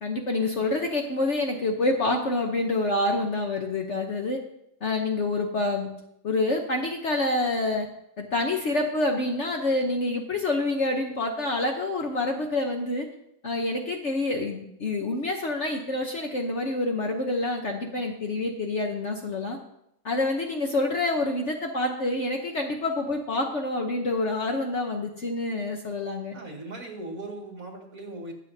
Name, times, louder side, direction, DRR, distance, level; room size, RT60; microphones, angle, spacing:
voice 1, 0.0-4.4 4.8-5.9 6.2-7.9 8.2-13.1 13.4-19.6 20.0-26.3, left 2 dB, 50° left, 2 dB, 1.1 m, -27 dB
voice 2, 26.3-28.3, right 2 dB, 50° right, 0 dB, 2.6 m, -38 dB
22.0 x 7.4 x 2.7 m, 0.78 s
omnidirectional pair, 1.8 m